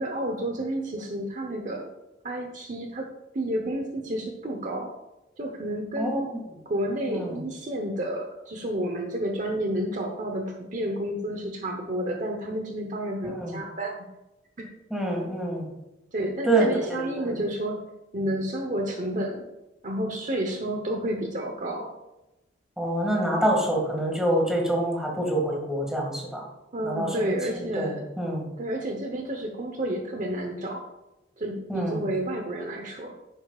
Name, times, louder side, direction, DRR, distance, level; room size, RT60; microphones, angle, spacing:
voice 1, 0.0-1.9 2.2-3.1 3.3-4.9 5.4-6.2 6.7-14.1 14.6-14.7 16.1-17.8 18.1-19.4 19.8-21.9 26.7-28.0 28.6-30.9 31.4-33.2, right 1 dB, 40° right, 3 dB, 1.0 m, -30 dB
voice 2, 7.1-7.4 13.2-13.6 14.9-15.6 16.5-16.7 17.2-17.3 22.8-26.4 26.8-28.5 31.7-32.0, right 1 dB, 5° right, -1 dB, 2.0 m, -26 dB
10.5 x 9.7 x 2.4 m, 0.97 s
head